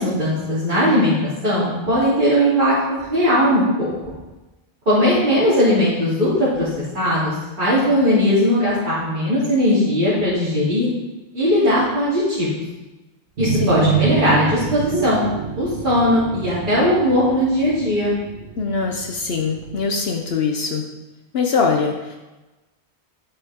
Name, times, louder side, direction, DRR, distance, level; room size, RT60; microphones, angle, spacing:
voice 1, 0.0-3.9 4.8-6.7 6.9-10.9 11.3-12.6 13.4-15.3 15.6-18.1, equal, 50° right, -12 dB, 3.2 m, -18 dB
sound 1, 13.4-19.9, right 7 dB, 80° right, 1.3 m, -27 dB
voice 2, 13.6-14.0 18.6-20.9 21.3-22.2, left 5 dB, 70° left, 2 dB, 1.1 m, -22 dB
10.5 x 8.2 x 3.6 m, 1.1 s
omnidirectional pair, 1.1 m